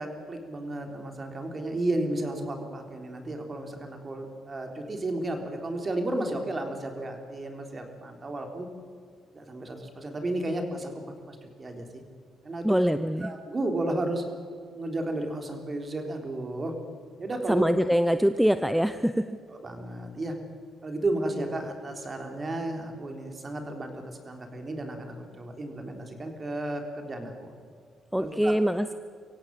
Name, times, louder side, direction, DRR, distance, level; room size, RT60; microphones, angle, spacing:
voice 1, 0.0-8.7 9.3-10.9 11.3-12.0 12.4-12.7 13.2-14.2 14.7-16.7 17.2-17.6 19.5-20.4 20.8-27.5 28.2-28.5, right 2 dB, 30° right, 4 dB, 3.7 m, -33 dB
voice 2, 12.6-13.3 17.5-19.4 28.1-28.9, equal, ahead, 11 dB, 0.7 m, -24 dB
24.0 x 16.0 x 7.8 m, 2.1 s
cardioid pair, 90°, 0 cm